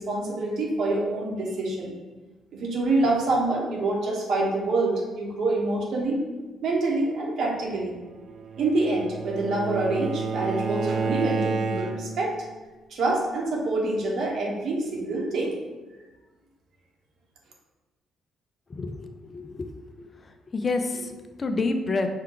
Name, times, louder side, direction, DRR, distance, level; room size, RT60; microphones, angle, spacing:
voice 1, 0.0-1.9 2.5-6.2 6.6-8.0 8.6-12.3 12.9-15.5, right 2 dB, 70° right, -2 dB, 0.9 m, -26 dB
Bowed string instrument, 8.3-12.3, right 4 dB, 50° right, 0.3 m, -30 dB
voice 2, 18.7-19.8 20.5-22.1, left 3 dB, 35° left, 6 dB, 0.4 m, -28 dB
4.5 x 2.2 x 3.7 m, 1.2 s
cardioid pair, 90°, 0 cm